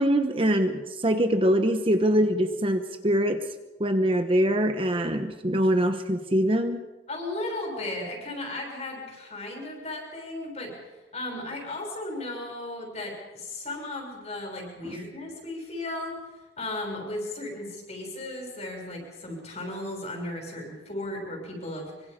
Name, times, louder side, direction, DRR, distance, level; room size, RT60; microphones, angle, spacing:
voice 1, 0.0-3.4 3.8-6.9 14.8-15.0, equal, 30° right, 7 dB, 1.1 m, -23 dB
voice 2, 7.1-10.7 11.1-16.2 16.6-22.1, left 1 dB, 35° left, 1 dB, 6.5 m, -35 dB
24.5 x 23.5 x 5.2 m, 1.1 s
head